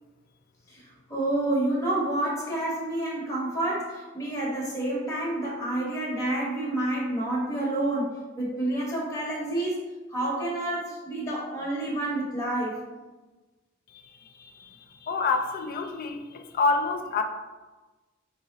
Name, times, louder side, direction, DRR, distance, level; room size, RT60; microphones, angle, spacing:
voice 1, 1.1-9.8 10.1-12.8, right 1 dB, 15° left, -5 dB, 0.8 m, -29 dB
voice 2, 13.9-17.2, left 4 dB, 45° left, 7 dB, 0.3 m, -28 dB
3.6 x 2.0 x 3.9 m, 1.2 s
head